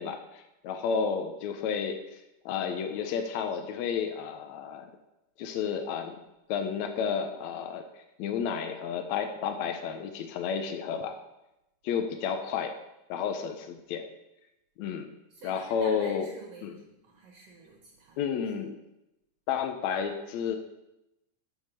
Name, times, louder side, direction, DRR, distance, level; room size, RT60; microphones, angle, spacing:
voice 1, 0.0-2.2 2.4-4.9 5.4-6.2 6.5-11.2 11.8-12.7 13.1-14.1 14.8-15.1 15.4-16.3 16.6-16.8 18.2-18.8 19.5-20.6, left 7 dB, 80° left, 5 dB, 1.6 m, -31 dB
voice 2, 15.3-18.3, right 3 dB, 65° right, 0 dB, 1.7 m, -48 dB
6.5 x 6.4 x 6.8 m, 0.92 s
omnidirectional pair, 3.9 m